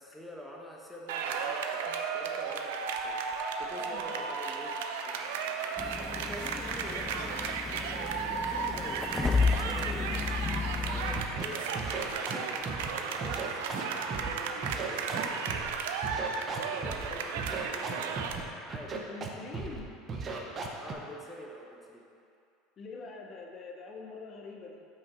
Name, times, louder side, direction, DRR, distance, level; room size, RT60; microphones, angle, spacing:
voice 1, 0.0-10.2 10.8-16.2 16.6-18.9 20.8-22.1, equal, 5° left, -2 dB, 1.1 m, -46 dB
sound 1, 1.1-18.4, right 5 dB, 80° right, 0.5 m, -34 dB
voice 2, 3.8-4.2 18.9-19.9 22.8-24.9, left 4 dB, 40° left, 1 dB, 0.8 m, -44 dB
sound 2, 5.8-11.2, left 4 dB, 20° left, 0.4 m, -32 dB
Scratching (performance technique), 11.1-11.4 11.7-12.9 13.2-14.3 14.6-15.7 16.0-17.1 17.4-18.4 18.7-19.3 19.5-19.8 20.1-20.9, right 5 dB, 35° right, 0.8 m, -36 dB
5.7 x 5.1 x 4.3 m, 2.5 s
hypercardioid pair, 95°, 0 cm